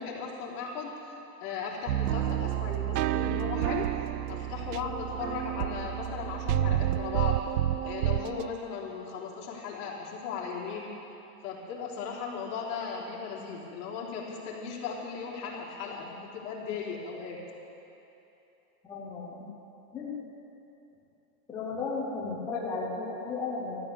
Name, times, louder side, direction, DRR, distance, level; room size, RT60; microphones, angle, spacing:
voice 1, 0.0-3.9 4.3-7.4 7.8-10.9 11.4-17.4, left 5 dB, 45° left, -5 dB, 3.5 m, -37 dB
sound 1, 1.9-8.5, right 13 dB, 85° right, 0.6 m, -29 dB
voice 2, 18.8-19.5 19.9-20.2 21.5-23.7, left 4 dB, 5° left, -5 dB, 0.4 m, -34 dB
14.0 x 12.5 x 7.0 m, 3.0 s
supercardioid pair, 165°, 46 cm